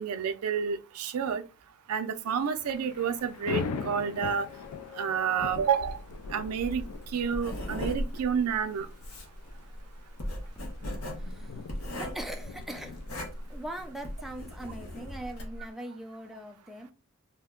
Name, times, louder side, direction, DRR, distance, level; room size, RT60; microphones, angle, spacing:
voice 1, 0.0-1.4 1.9-4.5 5.0-6.0 6.3-6.8 7.1-8.9, right 7 dB, 85° right, 0.4 m, -29 dB
Thunder / Rain, 2.3-15.0, left 5 dB, 85° left, 0.4 m, -42 dB
sound 1, 3.5-10.9, left 6 dB, 25° left, 1.1 m, -53 dB
Writing, 6.7-15.6, equal, 65° left, 0.8 m, -38 dB
voice 2, 11.1-11.6 12.0-13.0 13.5-16.9, right 1 dB, ahead, 0.4 m, -41 dB
2.7 x 2.1 x 3.5 m
head